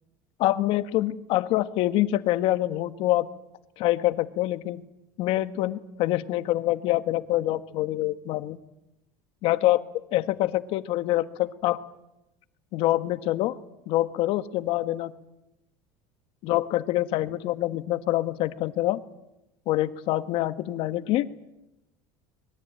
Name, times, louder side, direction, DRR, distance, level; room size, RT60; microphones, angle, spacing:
voice 1, 0.4-3.3 3.8-4.8 5.2-8.6 9.4-9.8 10.1-11.8 12.7-13.6 13.9-15.1 16.4-19.0 19.7-21.3, left 15 dB, 55° left, 11 dB, 1.5 m, -25 dB
24.5 x 21.5 x 8.9 m, 0.91 s
cardioid pair, 145°, 11 cm